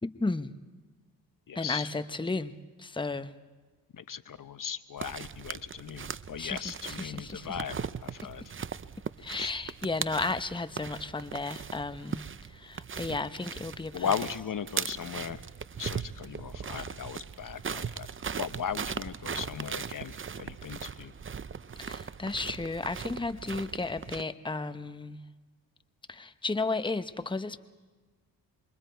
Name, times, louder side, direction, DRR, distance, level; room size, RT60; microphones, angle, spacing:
voice 1, 0.0-0.5 1.5-2.5 2.8-3.3 6.4-6.6 6.9-7.6 9.2-12.2 12.5-14.1 21.8-25.2 26.1-27.6, left 3 dB, 10° left, 10 dB, 1.0 m, -33 dB
voice 2, 1.5-1.9 4.0-7.8 8.0-8.5 9.4-9.5 13.9-15.4 15.8-18.1 18.4-21.1, left 7 dB, 50° left, 12 dB, 0.9 m, -37 dB
sound 1, 5.0-24.2, right 6 dB, 30° right, 0.7 m, -39 dB
27.0 x 23.0 x 4.6 m, 1.3 s
supercardioid pair, 55°, 41 cm